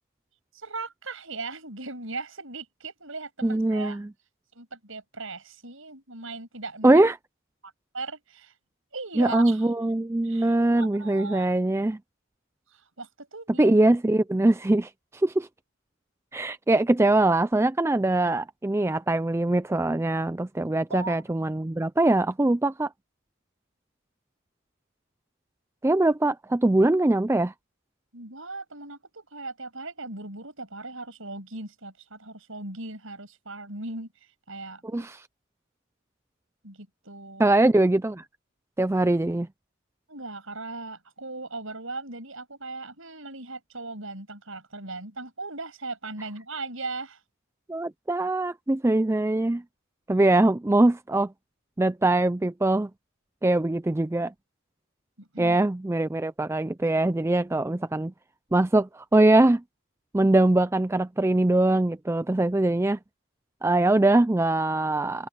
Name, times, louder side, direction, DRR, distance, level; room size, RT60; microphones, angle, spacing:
voice 1, 0.5-4.0 4.6-7.0 7.6-8.5 8.9-9.6 10.2-11.5 12.7-13.7 20.9-21.2 28.1-34.1 34.5-35.0 36.6-37.5 40.1-47.2 55.2-55.6, right 3 dB, 65° right, 7.0 m, -38 dB
voice 2, 3.4-4.1 6.8-7.2 9.2-12.0 13.6-15.5 16.3-22.9 25.8-27.5 34.9-35.3 37.4-38.2 38.8-39.5 47.7-49.6 50.1-51.3 51.8-52.9 53.4-54.3 55.4-58.1 58.5-59.6 60.1-63.0 63.6-65.3, right 2 dB, 10° right, 0.3 m, -22 dB
head